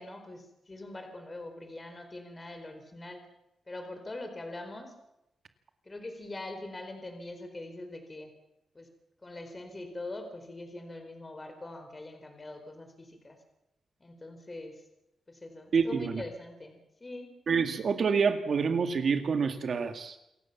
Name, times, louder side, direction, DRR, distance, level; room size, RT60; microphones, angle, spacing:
voice 1, 0.0-3.2 3.7-4.9 5.9-8.3 8.7-8.9 9.2-13.4 14.0-14.7 15.3-17.3, left 2 dB, 25° left, 6 dB, 4.4 m, -43 dB
voice 2, 15.7-16.2 17.5-20.2, right 5 dB, 55° right, 7 dB, 2.1 m, -27 dB
27.5 x 15.0 x 7.3 m, 0.85 s
cardioid pair, 110°, 0 cm